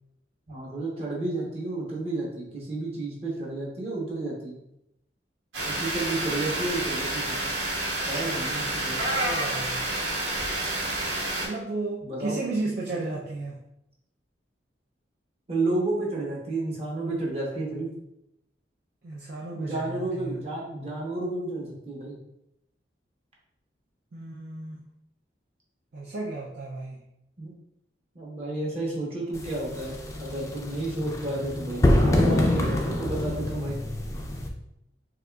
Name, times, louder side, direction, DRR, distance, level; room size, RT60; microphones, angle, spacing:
voice 1, 0.5-4.6 5.7-7.4 8.1-9.0 12.0-12.4 12.9-13.2 15.5-17.9 19.5-22.2 27.4-27.5 28.1-33.8, right 2 dB, 35° right, -4 dB, 1.0 m, -31 dB
sound 1, 5.5-11.5, right 1 dB, 90° right, 1.5 m, -29 dB
voice 2, 9.0-9.9 11.4-13.6 19.0-20.4 24.1-24.8 25.9-27.0, right 3 dB, 55° right, -4 dB, 0.5 m, -34 dB
sound 2, 29.3-34.5, left 1 dB, 15° left, 0.4 m, -25 dB
6.2 x 2.4 x 2.3 m, 0.82 s
head